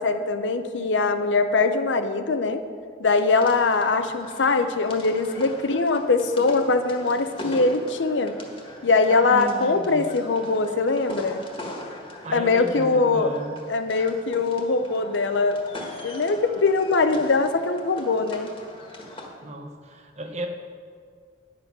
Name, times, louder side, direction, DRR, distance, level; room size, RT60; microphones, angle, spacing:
voice 1, 0.0-2.6 3.0-8.4 8.8-11.4 12.3-13.3 13.7-15.6 16.0-18.5, left 3 dB, 85° left, 8 dB, 0.7 m, -22 dB
sound 1, 3.1-19.3, left 1 dB, 30° left, 1.5 m, -41 dB
voice 2, 8.8-10.0 12.2-13.6 19.4-20.5, equal, 40° right, 4 dB, 1.0 m, -35 dB
10.0 x 7.6 x 6.0 m, 2.1 s
head